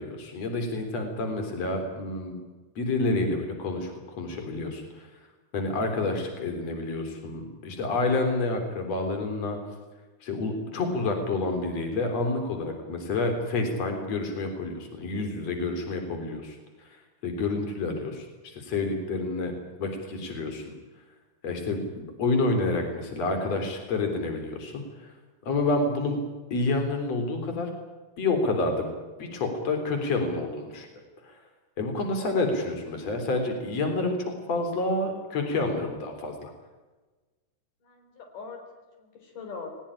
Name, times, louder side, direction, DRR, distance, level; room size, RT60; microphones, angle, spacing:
voice 1, 0.0-2.4 2.8-5.0 5.5-9.6 10.2-16.6 17.2-20.7 21.4-25.1 25.4-26.2 26.5-27.7 28.2-28.9 29.2-30.9 31.2-31.3 31.8-36.5, left 2 dB, 50° left, 5 dB, 4.8 m, -29 dB
voice 2, 37.8-39.7, left 5 dB, 75° left, 4 dB, 5.8 m, -42 dB
21.0 x 20.5 x 9.9 m, 1.2 s
omnidirectional pair, 3.7 m